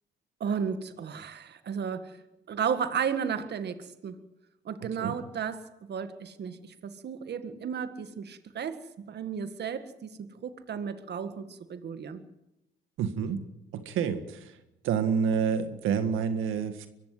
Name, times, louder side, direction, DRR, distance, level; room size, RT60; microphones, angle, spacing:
voice 1, 0.4-2.2 2.5-4.2 4.7-12.2, right 7 dB, 60° right, 10 dB, 1.9 m, -34 dB
voice 2, 4.8-5.2 13.0-13.4 13.7-14.5 14.8-16.9, right 6 dB, 85° right, 9 dB, 1.8 m, -28 dB
24.0 x 15.5 x 7.8 m, 0.91 s
cardioid pair, 90°, 20 cm